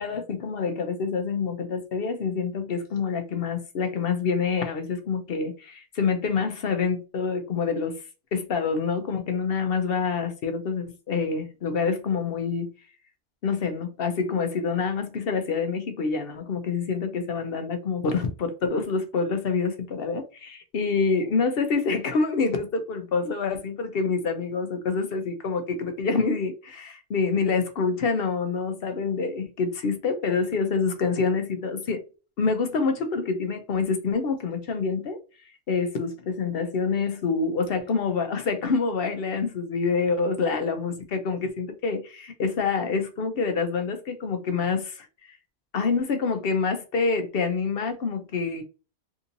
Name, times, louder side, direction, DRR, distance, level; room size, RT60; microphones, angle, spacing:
voice 1, 0.0-8.0 8.3-12.7 13.4-32.0 32.4-35.2 35.7-45.1 45.7-48.6, left 5 dB, 65° left, 0.8 m, -27 dB
3.7 x 2.7 x 2.6 m
omnidirectional pair, 1.1 m